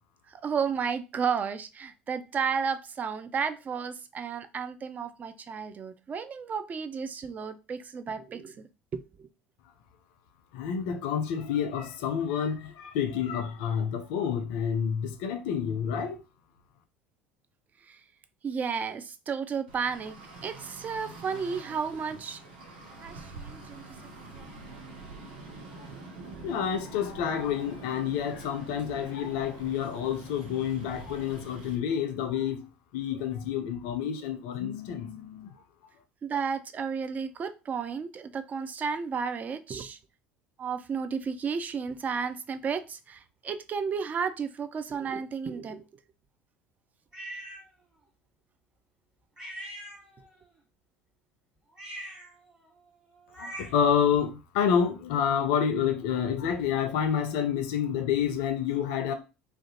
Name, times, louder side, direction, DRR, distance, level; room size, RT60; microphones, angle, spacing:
voice 1, 0.3-8.7 8.9-9.3 17.8-18.0 18.4-22.4 23.0-23.8 24.3-24.5 26.4-26.5 36.2-40.0 40.6-45.9, right 6 dB, 30° right, 0.3 m, -33 dB
voice 2, 10.5-16.2 26.4-32.6 32.9-35.5 53.4-59.1, left 8 dB, 60° left, 0.4 m, -28 dB
Traffic noise roadway noise, 19.7-31.8, right 3 dB, 70° right, 0.7 m, -46 dB
sound 1, 47.1-47.6 49.4-50.4 51.7-53.9, right 1 dB, 15° right, 1.2 m, -43 dB
2.4 x 2.1 x 2.7 m
figure-of-eight pair, 70°, 5 cm